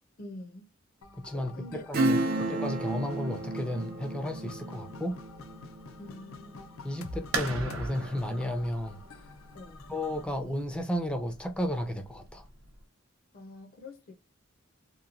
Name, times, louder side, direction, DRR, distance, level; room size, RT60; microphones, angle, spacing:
voice 1, 0.2-0.7 1.3-1.9 2.3-2.6 6.0-6.6 9.5-9.9 13.3-14.1, left 2 dB, 45° left, 0.6 m, -46 dB
sound 1, 1.0-10.3, left 2 dB, 90° left, 0.5 m, -47 dB
voice 2, 1.1-2.2 2.5-5.2 6.8-9.0 9.9-12.4, left 1 dB, 5° left, 0.5 m, -33 dB
Acoustic guitar / Strum, 1.9-8.1 8.5-8.6, right 2 dB, 50° right, 0.5 m, -33 dB
sound 2, 7.3-12.8, right 3 dB, 80° right, 0.8 m, -40 dB
2.9 x 2.2 x 2.4 m
head